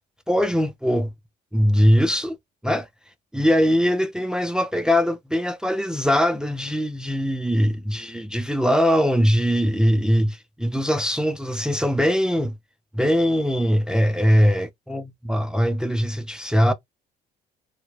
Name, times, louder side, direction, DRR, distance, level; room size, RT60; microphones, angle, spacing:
voice 1, 0.3-1.1 1.5-2.4 2.6-2.9 3.3-12.5 12.9-16.7, equal, 5° right, 0.3 m, -21 dB
2.1 x 2.0 x 3.0 m
cardioid pair, 110°, 17 cm